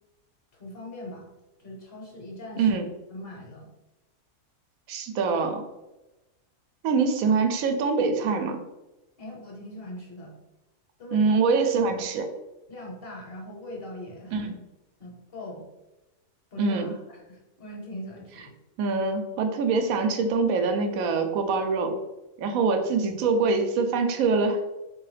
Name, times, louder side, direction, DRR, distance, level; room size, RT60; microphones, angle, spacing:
voice 1, 0.6-1.3 1.6-2.8 3.1-3.7 9.2-10.3 11.0-11.4 12.7-14.5 15.0-15.7 16.5-17.0 17.3-18.6 22.6-22.8, left 1 dB, 45° left, -1 dB, 1.1 m, -41 dB
voice 2, 2.6-2.9 4.9-5.6 6.8-8.6 11.1-12.3 14.3-14.5 16.6-16.9 18.8-22.0 22.4-24.6, right 4 dB, 80° right, 6 dB, 1.0 m, -24 dB
3.8 x 2.7 x 3.2 m, 1.0 s
omnidirectional pair, 1.4 m